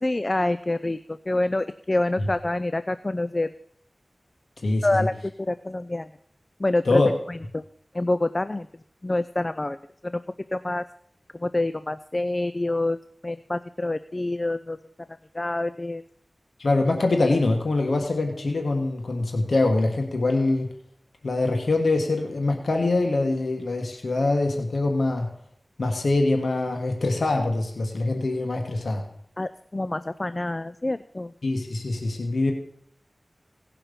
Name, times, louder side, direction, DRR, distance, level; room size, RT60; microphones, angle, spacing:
voice 1, 0.0-3.5 4.8-6.1 6.6-7.0 7.3-7.6 7.9-8.7 9.0-9.8 10.0-10.2 10.5-10.8 11.4-13.0 13.2-14.8 15.3-16.0 29.4-31.3, left 2 dB, 35° left, 13 dB, 0.4 m, -26 dB
voice 2, 4.6-5.1 6.8-7.1 16.6-20.7 21.2-25.3 25.8-29.1 31.4-32.5, left 2 dB, 90° left, 3 dB, 1.5 m, -24 dB
17.5 x 5.8 x 6.8 m, 0.66 s
wide cardioid pair, 60°, 0 cm